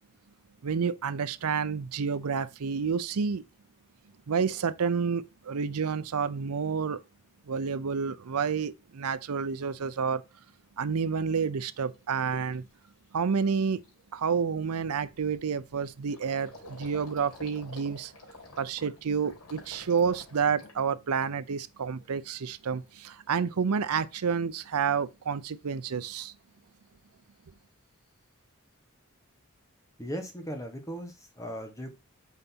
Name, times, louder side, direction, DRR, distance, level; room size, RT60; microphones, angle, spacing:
voice 1, 0.6-3.4 4.3-7.0 7.5-10.2 10.8-12.7 13.1-13.8 14.1-18.1 18.6-26.3, right 6 dB, 85° right, 0.5 m, -29 dB
Gurgling, 11.9-12.0 12.5-12.8 13.2-13.3 13.6-21.6 22.0-22.6, left 1 dB, 90° left, 3.3 m, -51 dB
voice 2, 30.0-31.9, equal, 15° left, 1.3 m, -38 dB
5.7 x 4.0 x 5.9 m
head